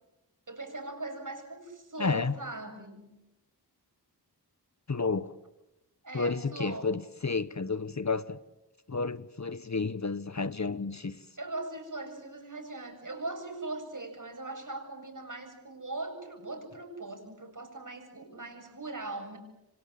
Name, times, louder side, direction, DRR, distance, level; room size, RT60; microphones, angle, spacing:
voice 1, 0.5-3.1 6.0-6.9 11.4-19.4, right 2 dB, 50° right, 7.7 m, -40 dB
voice 2, 2.0-2.3 4.9-5.3 6.1-8.4 8.9-11.2, left 4 dB, 45° left, 1.0 m, -31 dB
28.0 x 25.5 x 7.5 m
wide cardioid pair, 50°, 40 cm